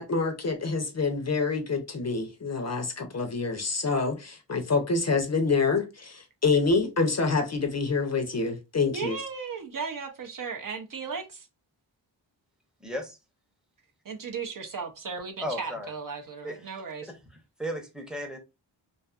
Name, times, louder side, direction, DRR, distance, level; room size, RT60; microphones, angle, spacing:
voice 1, 0.0-9.2, left 4 dB, 35° left, 0.6 m, -27 dB
voice 2, 8.9-11.5 14.0-17.1, right 5 dB, 45° right, 0.5 m, -36 dB
voice 3, 12.8-13.2 15.4-15.9 16.4-16.6 17.6-18.4, equal, ahead, 0.7 m, -34 dB
2.5 x 2.4 x 2.3 m
cardioid pair, 70°, 46 cm